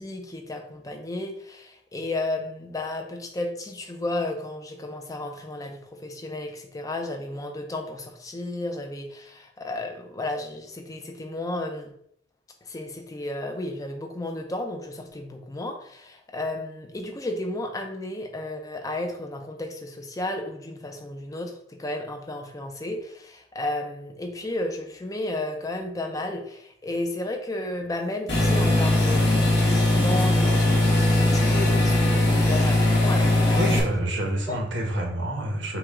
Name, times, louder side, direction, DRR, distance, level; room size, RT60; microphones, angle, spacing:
voice 1, 0.0-11.9 12.7-33.9 34.2-34.3, left 2 dB, 20° left, 4 dB, 0.6 m, -33 dB
sound 1, 28.3-33.8, left 1 dB, 65° left, 1.3 m, -20 dB
voice 2, 33.6-35.8, right 1 dB, 80° right, 0 dB, 1.2 m, -28 dB
6.2 x 2.4 x 3.6 m, 0.70 s
head